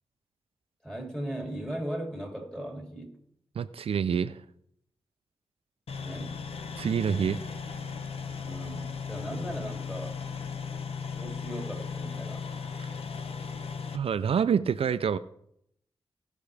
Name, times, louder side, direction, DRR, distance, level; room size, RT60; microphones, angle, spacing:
voice 1, 0.8-3.2 6.0-6.4 8.4-10.2 11.2-12.5, right 1 dB, 5° left, 1 dB, 2.6 m, -38 dB
voice 2, 3.6-4.4 6.8-7.5 13.9-15.2, right 7 dB, 80° right, 12 dB, 0.4 m, -27 dB
sound 1, 5.9-14.0, left 5 dB, 85° left, 0.8 m, -37 dB
17.5 x 5.8 x 3.4 m, 0.73 s
wide cardioid pair, 70°, 10 cm